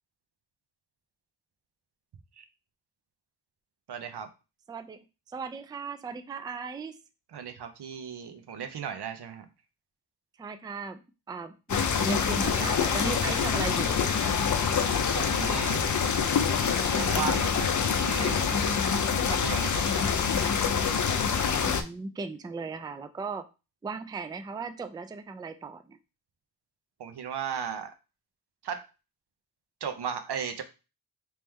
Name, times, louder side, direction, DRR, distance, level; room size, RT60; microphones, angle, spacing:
voice 1, 3.9-4.3 7.3-9.4 15.2-15.8 16.8-18.7 19.3-20.2 27.0-27.9 28.6-28.9 29.8-30.6, right 7 dB, 80° right, 7 dB, 0.7 m, -36 dB
voice 2, 4.7-5.0 5.3-7.0 10.4-11.0 11.3-14.0 21.6-23.5 23.8-26.0, right 4 dB, 10° right, 9 dB, 0.3 m, -37 dB
sound 1, 11.7-21.8, left 6 dB, 50° left, 0.5 m, -26 dB
3.1 x 3.1 x 3.5 m, 0.29 s
wide cardioid pair, 80°, 39 cm